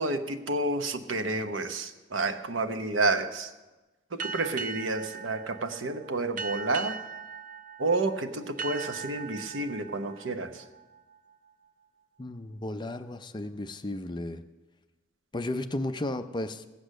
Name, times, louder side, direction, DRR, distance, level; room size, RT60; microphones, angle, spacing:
voice 1, 0.0-3.5 4.1-7.0 7.8-10.6, right 2 dB, 75° right, 8 dB, 0.9 m, -30 dB
sound 1, 4.2-11.5, right 5 dB, 40° right, 0.3 m, -40 dB
voice 2, 12.2-14.4 15.3-16.7, left 1 dB, 20° left, 9 dB, 0.5 m, -34 dB
16.0 x 8.2 x 6.5 m, 1.1 s
head